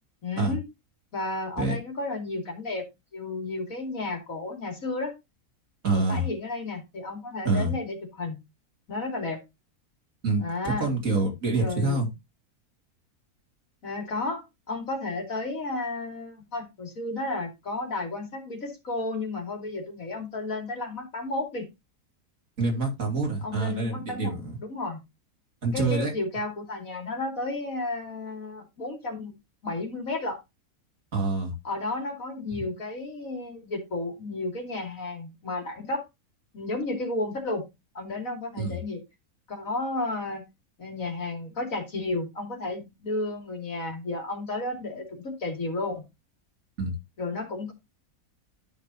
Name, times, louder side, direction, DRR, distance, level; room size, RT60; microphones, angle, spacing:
voice 1, 0.2-0.6 1.1-2.9 3.1-5.1 5.9-8.3 8.9-9.4 10.4-10.9 11.6-12.0 13.8-21.7 23.4-24.3 24.7-25.0 25.7-29.4 29.6-30.4 31.6-36.0 36.5-37.6 37.9-39.0 39.5-40.4 40.8-46.0 47.2-47.7, left 2 dB, 65° left, 2 dB, 3.1 m, -32 dB
voice 2, 5.8-6.2 7.4-7.7 10.2-12.1 22.6-24.6 25.6-26.1 31.1-31.5 38.6-38.8 46.8-46.9, right 3 dB, 60° right, 1 dB, 3.2 m, -26 dB
12.5 x 6.0 x 2.8 m, 0.21 s
omnidirectional pair, 1.5 m